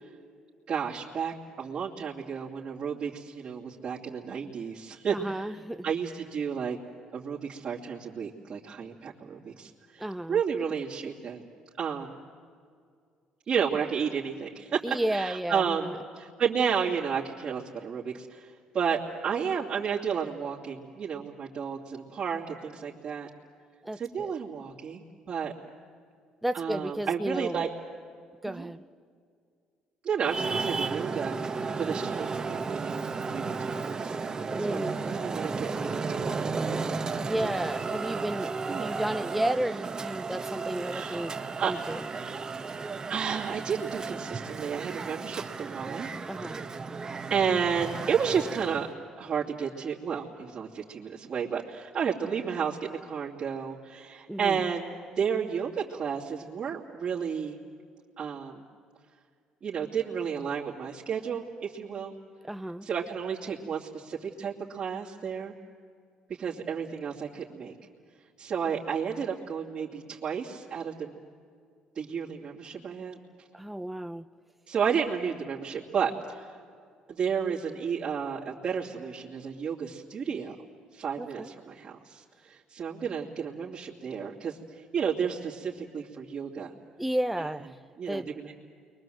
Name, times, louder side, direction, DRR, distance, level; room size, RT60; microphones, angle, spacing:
voice 1, 0.7-5.5 5.8-6.8 7.1-11.4 11.8-12.1 13.5-23.3 24.0-25.5 26.5-27.7 28.4-28.7 30.0-34.1 34.5-36.4 38.7-38.9 40.8-41.3 41.6-41.7 43.1-46.1 47.3-48.9 49.2-57.6 58.2-58.6 59.6-62.1 62.8-65.5 66.4-67.7 68.4-71.1 71.9-73.2 74.7-76.5 77.1-80.5 80.9-86.7 87.4-87.5 88.0-88.5, right 7 dB, 50° right, -5 dB, 2.7 m, -32 dB
voice 2, 5.1-5.9 10.0-10.4 14.8-16.0 23.8-24.3 26.4-27.6 28.4-28.8 31.8-32.0 34.6-35.0 37.2-41.3 41.7-42.1 46.3-46.7 54.3-54.6 62.4-62.9 73.5-74.3 81.2-81.5 87.0-87.8 88.1-88.3, right 1 dB, 5° right, 9 dB, 0.6 m, -32 dB
Traffic noise roadway noise, 30.2-48.9, right 4 dB, 30° right, 1.4 m, -34 dB
29.5 x 23.0 x 7.8 m, 2.2 s
cardioid pair, 105°, 2 cm